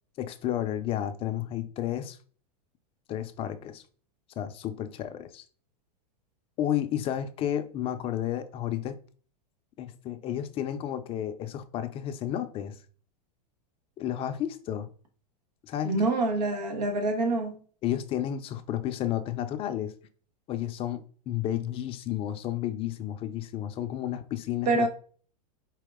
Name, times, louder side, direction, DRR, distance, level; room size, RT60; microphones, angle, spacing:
voice 1, 0.2-2.2 3.1-3.8 4.4-5.4 6.6-9.0 9.8-12.8 14.0-14.9 15.6-16.1 17.8-19.9 20.5-24.9, left 11 dB, 30° left, 0.4 m, -32 dB
voice 2, 15.8-17.5 24.6-24.9, right 2 dB, 90° right, 1.5 m, -26 dB
4.8 x 2.9 x 3.5 m
hypercardioid pair, 130°, 20 cm